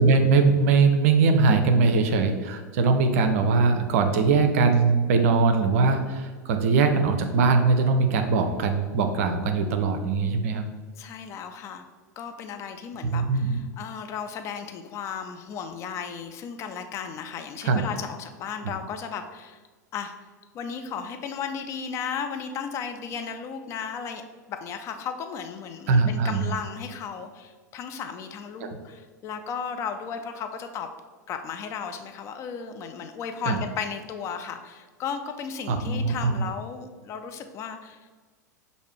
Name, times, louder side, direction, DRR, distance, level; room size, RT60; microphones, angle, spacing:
voice 1, 0.0-10.7 13.1-13.6 17.6-17.8 25.9-26.6 28.6-28.7 33.5-33.6 35.7-36.5, right 4 dB, 50° right, 7 dB, 0.5 m, -21 dB
voice 2, 11.0-11.9 12.2-19.6 19.9-20.1 20.5-24.2 24.5-30.9 31.3-38.1, left 6 dB, 30° left, 7 dB, 0.4 m, -35 dB
6.5 x 2.6 x 3.2 m, 1.4 s
figure-of-eight pair, 85°, 10 cm